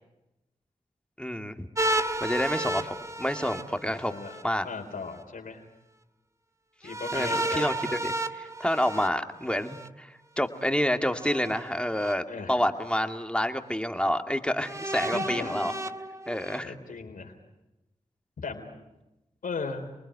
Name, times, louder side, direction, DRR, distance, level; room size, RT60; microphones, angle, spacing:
voice 1, 1.2-1.7 2.2-4.1 4.4-4.7 7.1-15.7 16.3-16.7, equal, 5° left, 6 dB, 2.3 m, -28 dB
sound 1, 1.8-4.4 6.9-9.9 11.2-12.1 12.9-13.0 14.6-16.6, right 1 dB, 20° right, 1.5 m, -32 dB
voice 2, 3.9-5.6 6.8-7.7 12.3-12.6 15.0-15.7 16.6-17.3 18.4-18.8 19.4-19.9, left 4 dB, 90° left, 3 dB, 4.0 m, -37 dB
29.0 x 20.0 x 9.9 m, 0.96 s
cardioid pair, 45°, 14 cm